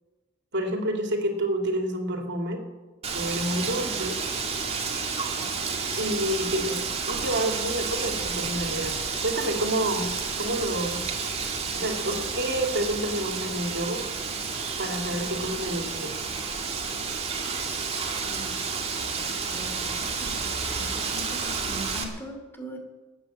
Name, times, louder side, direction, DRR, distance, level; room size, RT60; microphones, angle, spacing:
voice 1, 0.5-2.6 3.1-4.2 6.0-6.8 7.1-8.9 9.2-10.1 10.4-11.0 11.7-14.0 14.8-16.1, right 1 dB, 55° right, 3 dB, 2.9 m, -28 dB
Wind, 3.0-22.0, right 5 dB, 30° right, 2.1 m, -31 dB
voice 2, 18.2-18.6 19.1-20.5 20.8-22.8, right 1 dB, 10° left, 3 dB, 2.9 m, -41 dB
20.0 x 9.0 x 7.5 m, 1.2 s
head